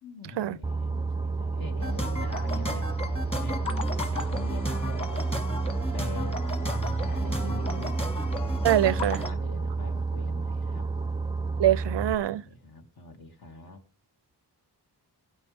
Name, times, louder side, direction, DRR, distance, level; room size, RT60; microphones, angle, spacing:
voice 1, 0.0-2.9 3.3-5.4 5.9-8.0 8.8-10.9 12.2-13.8, left 3 dB, 60° left, 2.4 m, -43 dB
Boat Water vehicle, 0.6-12.2, right 4 dB, 10° right, 0.5 m, -30 dB
sound 1, 1.8-9.3, left 1 dB, 15° left, 1.8 m, -33 dB
voice 2, 8.6-9.2 11.6-12.4, right 12 dB, 90° right, 0.5 m, -23 dB
17.5 x 10.0 x 3.5 m
wide cardioid pair, 115°, 41 cm